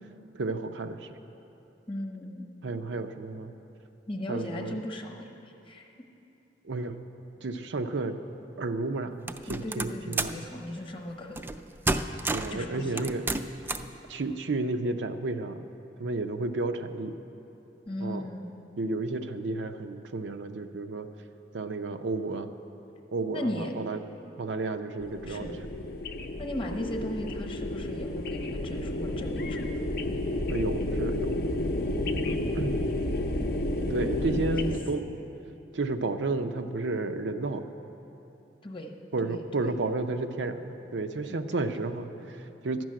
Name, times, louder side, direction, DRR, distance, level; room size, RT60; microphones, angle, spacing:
voice 1, 0.3-1.2 2.6-3.5 4.3-4.8 6.6-7.0 7.4-8.2 8.6-10.4 12.3-13.3 14.1-15.6 16.0-17.2 18.0-18.3 18.8-21.1 21.5-22.5 23.1-24.0 24.4-25.8 30.5-31.4 32.5-32.8 33.9-35.1 35.7-37.7 39.1-42.8, right 3 dB, 85° right, 8 dB, 0.6 m, -32 dB
voice 2, 1.9-2.5 4.1-5.3 5.7-5.9 9.5-11.4 12.5-13.1 17.9-18.5 23.3-23.7 25.3-25.6 26.4-29.8 31.9-32.1 34.3-34.7 38.6-38.9 39.2-39.7 41.3-41.7, left 1 dB, 30° left, 3 dB, 0.9 m, -37 dB
sound 1, 9.3-10.4 11.4-11.6 11.9-12.6 13.0-13.9, right 2 dB, 10° right, 0.3 m, -30 dB
sound 2, 25.0-34.8, left 1 dB, 60° left, 0.6 m, -31 dB
12.0 x 6.2 x 8.8 m, 3.0 s
head